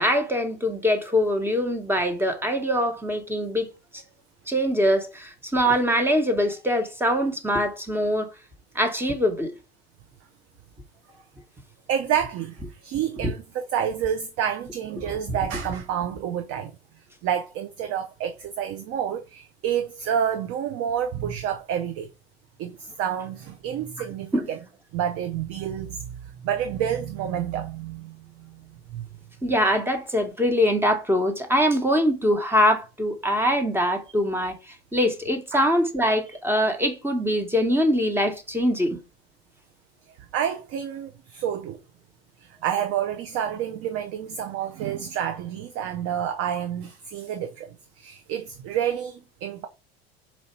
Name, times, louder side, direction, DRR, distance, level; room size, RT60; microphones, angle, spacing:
voice 1, 0.0-3.7 4.5-8.3 8.7-9.5 13.2-13.3 24.3-24.5 29.4-34.6 34.9-39.0, equal, 5° right, 1.0 m, -23 dB
voice 2, 11.9-16.7 17.2-22.1 22.6-24.6 24.9-26.1 26.4-28.5 28.9-29.1 35.5-35.7 40.3-41.8 42.4-49.7, right 9 dB, 50° right, 0.6 m, -29 dB
4.3 x 2.7 x 4.3 m
hypercardioid pair, 85°, 31 cm